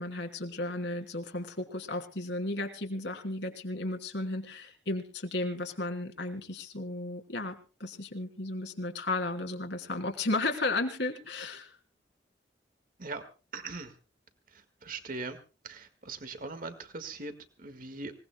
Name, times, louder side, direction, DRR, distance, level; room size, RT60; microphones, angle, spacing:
voice 1, 0.0-11.8, left 2 dB, 70° left, 4 dB, 2.9 m, -34 dB
voice 2, 13.5-13.9 14.5-15.4 15.6-18.1, right 3 dB, 50° right, 9 dB, 1.7 m, -40 dB
26.5 x 18.5 x 2.2 m, 0.34 s
head